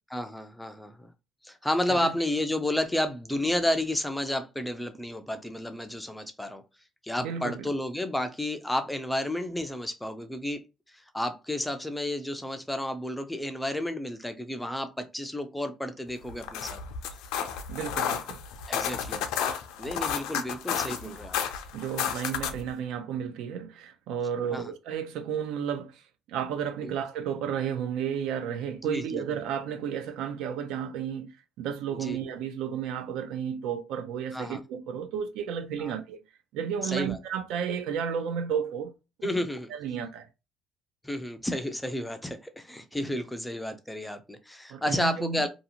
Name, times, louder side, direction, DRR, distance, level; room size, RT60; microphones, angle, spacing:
voice 1, 0.1-1.1 1.4-6.6 7.0-10.6 10.9-16.8 18.7-19.2 19.8-21.4 24.5-24.7 26.8-26.9 28.9-29.2 32.0-32.2 34.3-34.6 35.8-36.0 36.8-37.2 39.2-39.7 41.0-45.5, left 1 dB, 5° left, 0.3 m, -31 dB
voice 2, 7.2-7.7 17.7-18.4 20.8-21.1 21.7-26.0 26.3-31.3 31.6-36.2 36.5-38.9 39.2-40.3 43.0-43.1 44.7-45.5, right 8 dB, 75° right, 0.4 m, -32 dB
sound 1, 16.3-22.7, left 8 dB, 90° left, 0.4 m, -32 dB
2.6 x 2.4 x 2.8 m
cardioid pair, 150°, 0 cm